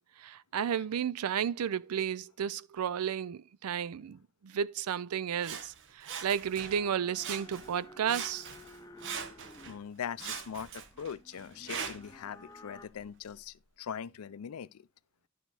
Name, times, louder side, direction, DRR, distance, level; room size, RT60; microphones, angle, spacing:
voice 1, 0.2-8.5, right 8 dB, 85° right, 0.4 m, -33 dB
Sawing, 5.4-6.9 7.2-7.8 8.1-9.8 10.2-12.2 12.8-12.9, right 6 dB, 60° right, 0.9 m, -42 dB
sound 1, 6.5-12.9, left 2 dB, 15° left, 0.6 m, -53 dB
voice 2, 9.7-14.8, left 7 dB, 75° left, 0.4 m, -41 dB
11.0 x 3.9 x 4.7 m
head